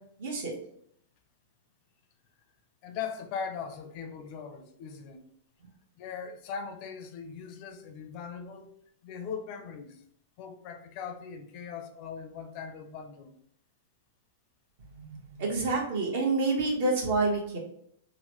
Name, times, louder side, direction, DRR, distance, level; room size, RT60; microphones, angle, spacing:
voice 1, 0.2-0.5 14.9-17.6, right 3 dB, 60° right, 0 dB, 1.0 m, -28 dB
voice 2, 2.8-5.2 6.0-8.7 9.0-10.0 10.4-13.3, left 6 dB, 45° left, 6 dB, 0.4 m, -40 dB
3.0 x 2.1 x 3.0 m, 0.69 s
hypercardioid pair, 140°, 0 cm